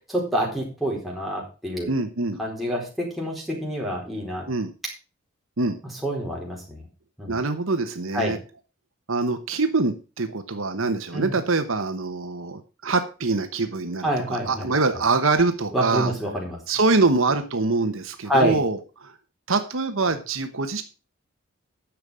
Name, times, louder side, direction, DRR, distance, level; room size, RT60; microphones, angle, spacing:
voice 1, 0.1-1.9 2.4-4.4 6.0-6.8 7.2-7.4 8.1-8.4 11.1-11.3 14.0-14.7 15.7-16.6 18.3-18.6, equal, ahead, -3 dB, 4.2 m, -26 dB
voice 2, 1.9-2.4 4.5-4.7 5.6-5.8 7.3-8.4 9.1-16.1 16.7-19.1 19.5-20.8, right 3 dB, 70° right, 8 dB, 1.1 m, -24 dB
10.5 x 7.0 x 6.3 m, 0.33 s
head